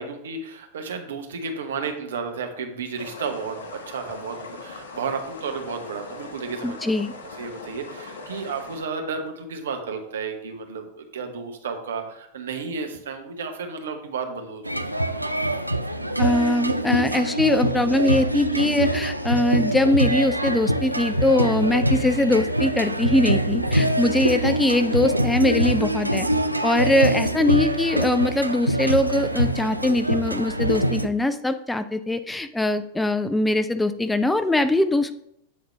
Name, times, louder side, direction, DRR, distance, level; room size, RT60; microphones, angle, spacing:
voice 1, 0.0-7.0 7.4-10.9 11.1-14.9, right 5 dB, 65° right, 5 dB, 0.9 m, -32 dB
sound 1, 3.0-8.8, left 3 dB, 65° left, 0.8 m, -40 dB
voice 2, 6.6-7.1 16.2-26.3 26.6-35.1, left 1 dB, 5° left, 10 dB, 0.3 m, -22 dB
sound 2, 14.6-31.1, right 1 dB, 85° right, 0.3 m, -24 dB
8.3 x 3.9 x 3.3 m, 0.75 s
figure-of-eight pair, 90°, 0 cm